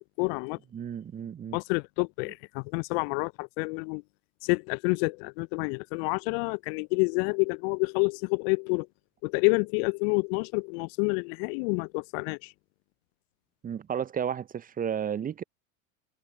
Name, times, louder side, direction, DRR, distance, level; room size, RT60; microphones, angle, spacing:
voice 1, 0.2-0.6 1.5-4.0 4.4-8.9 9.2-12.5, left 36 dB, 45° left, 0.6 m, -28 dB
voice 2, 0.7-1.6 13.6-15.4, right 8 dB, 20° right, 0.7 m, -32 dB
figure-of-eight pair, 80°, 41 cm